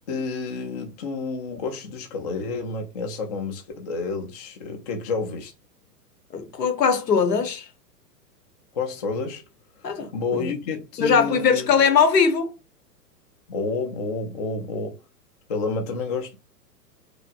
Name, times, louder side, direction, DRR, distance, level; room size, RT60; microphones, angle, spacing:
voice 1, 0.1-5.5 8.7-9.4 10.1-11.7 13.5-15.0 15.5-16.4, left 4 dB, 30° left, 0.3 m, -29 dB
voice 2, 6.3-7.6 9.8-10.5 11.0-12.5, left 6 dB, 80° left, 0.8 m, -20 dB
2.7 x 2.2 x 2.2 m
figure-of-eight pair, 105°, 48 cm